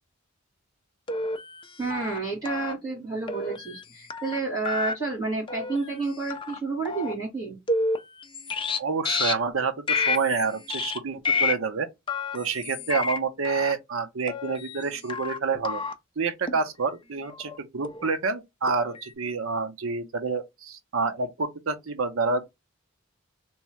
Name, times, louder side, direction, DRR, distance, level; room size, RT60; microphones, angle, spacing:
sound 1, 1.1-1.6 1.9-2.2 2.4-2.7 3.3-3.8 4.1-4.4 4.6-4.9 5.5-5.8 6.3-6.6 6.8-7.1 7.7-8.8 9.0-9.3 9.9-10.4 10.7-11.0 11.2-11.5 12.1-13.2 13.4-13.7 14.3-14.8 15.1-15.4 15.6-15.9 16.5-16.6 17.3-17.6 17.8-18.1 18.7-19.1, left 4 dB, 25° left, 0.4 m, -29 dB
voice 1, 1.8-7.6, right 3 dB, 20° right, 2.2 m, -30 dB
voice 2, 8.8-11.9 12.3-15.8 16.2-22.5, right 4 dB, 75° right, 0.7 m, -28 dB
3.5 x 3.1 x 3.1 m
head